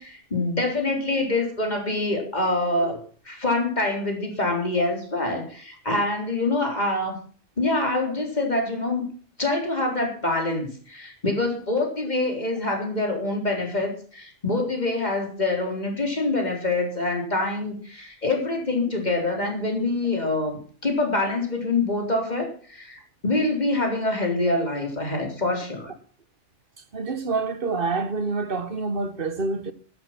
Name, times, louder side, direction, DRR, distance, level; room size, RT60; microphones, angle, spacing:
voice 1, 0.0-3.0 3.3-7.2 7.6-9.0 9.4-25.9, left 2 dB, 35° left, 4.0 m, -25 dB
voice 2, 26.9-29.7, right 3 dB, 50° right, 1.4 m, -27 dB
13.0 x 12.0 x 6.0 m
omnidirectional pair, 1.2 m